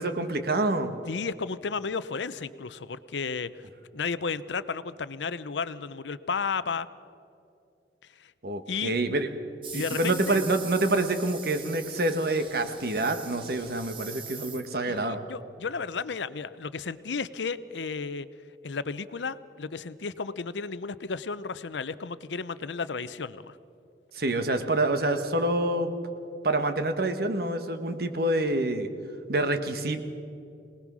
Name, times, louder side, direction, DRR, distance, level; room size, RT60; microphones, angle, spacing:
voice 1, 0.0-0.9 8.4-9.3 9.7-15.2 24.1-25.9 26.4-28.9 29.3-30.0, right 2 dB, 60° right, 8 dB, 1.4 m, -27 dB
voice 2, 1.1-3.5 3.9-6.9 8.2-8.3 8.7-9.0 9.7-10.4 14.9-18.3 18.6-23.6, left 5 dB, 90° left, 15 dB, 0.7 m, -33 dB
sound 1, 9.6-15.0, right 5 dB, 30° right, 1.4 m, -42 dB
24.5 x 19.0 x 6.2 m, 2.7 s
head